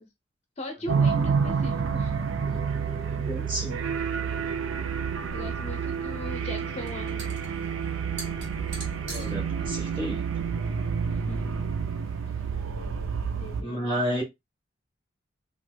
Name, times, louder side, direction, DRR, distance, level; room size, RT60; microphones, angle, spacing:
voice 1, 0.6-2.2 5.3-7.4 11.1-11.6 13.4-14.0, left 2 dB, 35° left, 0.6 m, -40 dB
sound 1, 0.9-13.6, right 6 dB, 85° right, 0.5 m, -29 dB
sound 2, 2.4-9.7, right 2 dB, 45° right, 2.0 m, -47 dB
voice 2, 3.2-3.8 9.1-10.5 13.6-14.2, equal, 25° right, 1.4 m, -31 dB
sound 3, 5.6-11.4, right 2 dB, 60° right, 1.6 m, -45 dB
4.4 x 2.4 x 2.2 m
head